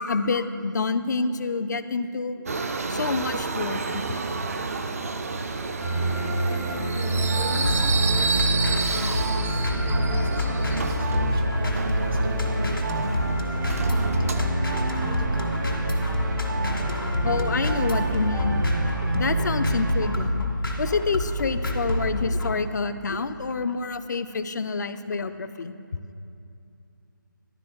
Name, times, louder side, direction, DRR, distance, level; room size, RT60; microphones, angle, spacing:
voice 1, 0.0-2.4 2.9-4.0 17.2-18.6 19.1-20.4 20.8-25.7, left 4 dB, 55° left, 11 dB, 0.4 m, -27 dB
Subway metro underground, 2.5-14.5, right 4 dB, 45° right, 0.4 m, -31 dB
sound 1, 5.8-20.3, right 2 dB, 60° right, 1.1 m, -28 dB
voice 2, 6.0-15.9, equal, 85° right, 1 dB, 1.5 m, -38 dB
sound 2, 7.5-22.5, left 1 dB, 90° left, 1.9 m, -27 dB
11.5 x 4.1 x 3.8 m, 2.6 s
figure-of-eight pair, 160°, 11 cm